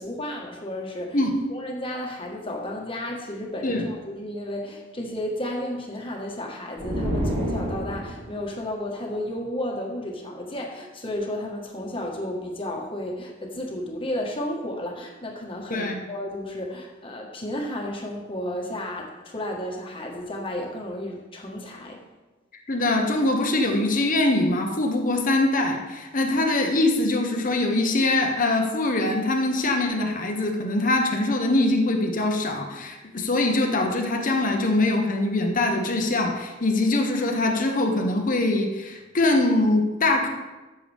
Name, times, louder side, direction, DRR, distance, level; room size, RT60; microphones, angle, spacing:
voice 1, 0.0-1.2 1.5-22.0, left 1 dB, 30° left, 0 dB, 1.5 m, -33 dB
sound 1, 6.8-8.3, equal, 70° right, 3.4 m, -28 dB
voice 2, 15.7-16.0 22.7-40.3, left 2 dB, 45° left, 3 dB, 1.0 m, -23 dB
13.5 x 6.9 x 3.5 m, 1.2 s
head